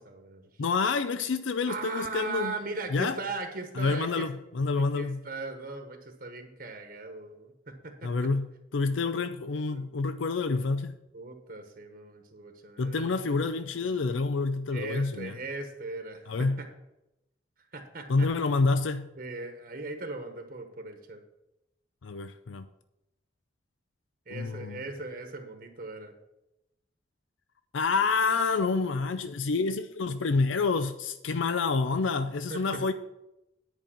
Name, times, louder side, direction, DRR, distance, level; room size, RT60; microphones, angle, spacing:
voice 1, 0.0-0.5 1.7-4.3 4.9-8.3 8.8-9.8 11.1-13.2 13.5-14.2 14.7-16.7 17.7-18.3 19.2-21.2 24.3-26.1 32.5-32.8, right 3 dB, 50° right, 1.1 m, -39 dB
voice 2, 0.6-2.5 2.9-3.2 3.8-5.2 8.0-11.0 12.8-15.3 16.3-16.6 18.1-19.1 22.0-22.7 24.3-24.8 27.7-32.9, left 4 dB, 90° left, 0.5 m, -28 dB
10.0 x 5.3 x 7.2 m
head